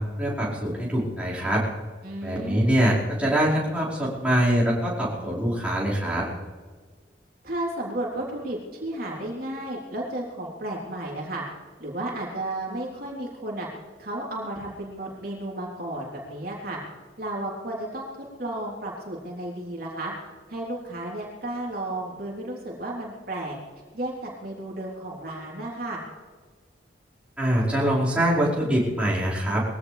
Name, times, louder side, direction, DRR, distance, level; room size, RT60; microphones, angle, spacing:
voice 1, 0.0-1.6 2.2-6.3 27.4-29.6, right 1 dB, 5° right, -8 dB, 4.9 m, -24 dB
voice 2, 2.0-2.7 7.4-11.4 11.8-13.7 14.0-16.8 17.2-18.1 18.4-20.1 20.5-23.6 23.9-26.0, right 1 dB, 50° right, -4 dB, 3.7 m, -33 dB
22.5 x 16.0 x 3.4 m, 1.5 s
head